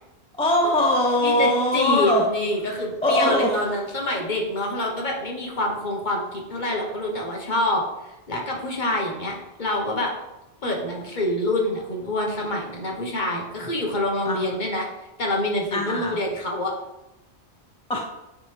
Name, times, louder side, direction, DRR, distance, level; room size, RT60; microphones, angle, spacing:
voice 1, 0.3-2.3 2.6-3.8 8.9-9.0 14.2-14.6 15.7-16.2 17.9-18.1, left 1 dB, 10° left, 1 dB, 0.4 m, -22 dB
voice 2, 1.2-7.8 8.3-10.1 10.6-14.9 15.2-16.7, left 1 dB, 45° left, -1 dB, 1.2 m, -26 dB
8.9 x 3.3 x 3.3 m, 0.95 s
omnidirectional pair, 1.1 m